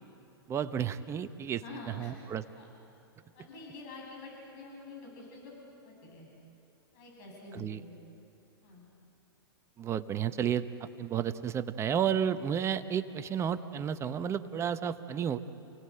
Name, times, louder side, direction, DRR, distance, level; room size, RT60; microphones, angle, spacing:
voice 1, 0.5-1.6 2.0-2.4 7.5-7.8 9.8-15.4, right 8 dB, 20° right, 12 dB, 0.9 m, -32 dB
voice 2, 1.5-2.1 2.5-2.7 3.3-5.5 5.8-6.3 6.9-8.0 8.6-8.9, left 3 dB, 50° left, -1 dB, 7.9 m, -47 dB
29.0 x 18.0 x 7.8 m, 2.9 s
hypercardioid pair, 120°, 13 cm